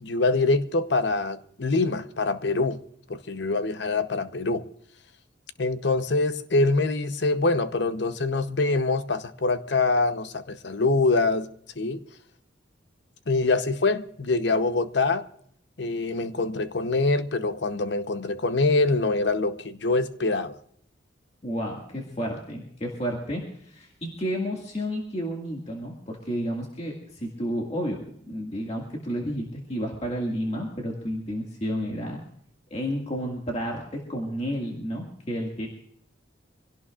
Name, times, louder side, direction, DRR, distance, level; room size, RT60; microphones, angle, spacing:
voice 1, 0.0-2.8 3.1-4.7 5.6-11.5 11.8-12.0 13.3-15.3 15.8-20.6, left 3 dB, 60° left, 0.8 m, -24 dB
voice 2, 21.4-28.0 28.3-32.2 32.7-35.7, equal, 35° left, 1.9 m, -31 dB
25.5 x 17.0 x 2.4 m
head